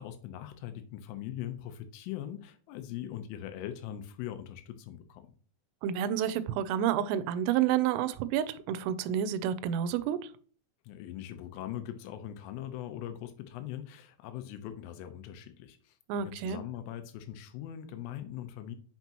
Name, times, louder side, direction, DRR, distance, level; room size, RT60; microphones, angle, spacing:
voice 1, 0.0-5.3 10.8-18.8, left 11 dB, 80° left, 3.3 m, -41 dB
voice 2, 5.8-10.3 16.1-16.6, right 10 dB, 85° right, 3.2 m, -29 dB
8.1 x 5.9 x 3.0 m
omnidirectional pair, 5.8 m